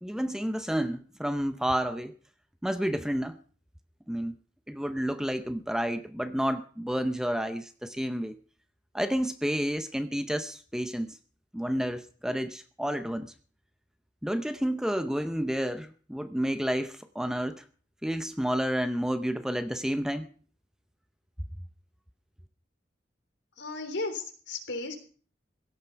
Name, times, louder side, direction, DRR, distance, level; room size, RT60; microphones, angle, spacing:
voice 1, 0.0-2.1 2.6-3.4 4.1-4.3 4.7-8.4 8.9-11.2 11.5-13.3 14.2-17.6 18.0-20.3, equal, 5° right, 9 dB, 0.7 m, -30 dB
voice 2, 23.6-24.9, left 3 dB, 75° left, 6 dB, 3.6 m, -35 dB
16.5 x 11.5 x 5.7 m, 0.42 s
head